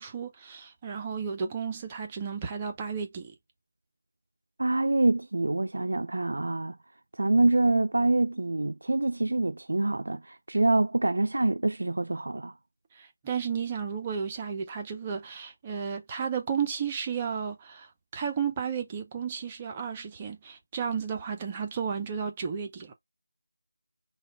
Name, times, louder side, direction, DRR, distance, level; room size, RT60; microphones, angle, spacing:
voice 1, 0.0-3.3 12.9-22.9, right 6 dB, 20° right, 0.7 m, -33 dB
voice 2, 4.6-6.8 7.2-12.5, right 2 dB, 65° right, 0.4 m, -25 dB
5.8 x 2.3 x 3.6 m
figure-of-eight pair, 165°, 0 cm